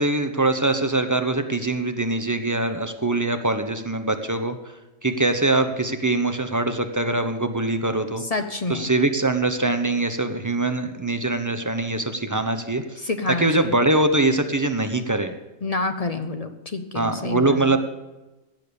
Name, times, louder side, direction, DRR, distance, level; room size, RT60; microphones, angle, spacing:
voice 1, 0.0-4.6 5.0-8.2 8.7-12.8 13.4-15.3 16.9-17.8, right 2 dB, 15° right, 7 dB, 0.7 m, -23 dB
voice 2, 8.3-8.9 13.0-13.8 15.6-17.8, left 3 dB, 35° left, 8 dB, 0.7 m, -28 dB
17.0 x 7.0 x 6.9 m, 1.1 s
omnidirectional pair, 1.4 m